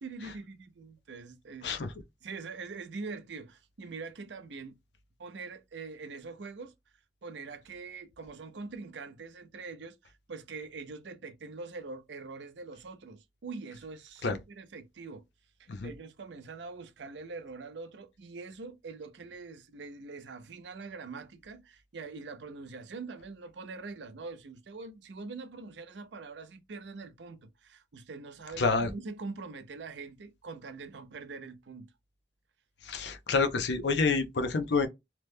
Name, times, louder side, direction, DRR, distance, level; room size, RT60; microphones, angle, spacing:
voice 1, 0.0-1.8 2.2-4.8 5.2-6.7 7.2-15.2 15.6-31.9, right 4 dB, 85° right, 0.5 m, -43 dB
voice 2, 28.6-28.9 32.8-34.9, left 4 dB, 80° left, 0.5 m, -28 dB
2.9 x 2.1 x 3.3 m
head